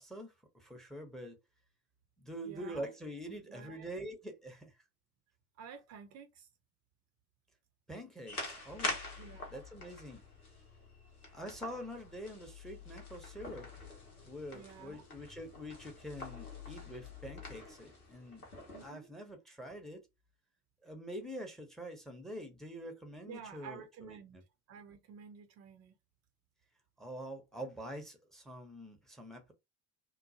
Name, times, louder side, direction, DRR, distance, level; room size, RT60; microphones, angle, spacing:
voice 1, 0.0-1.4 2.2-4.8 7.9-9.0 9.5-10.2 11.3-13.7 14.2-18.4 18.8-20.1 20.8-24.4 27.0-29.5, equal, ahead, 0.7 m, -45 dB
voice 2, 2.4-2.9 3.3-4.1 5.6-6.5 9.2-9.5 10.8-10.9 14.5-15.0 18.7-19.1 23.3-24.4 24.7-26.0, right 7 dB, 40° right, 0.6 m, -51 dB
sound 1, 8.3-18.9, left 2 dB, 90° left, 0.8 m, -45 dB
3.0 x 2.0 x 2.6 m
figure-of-eight pair, 60°, 43 cm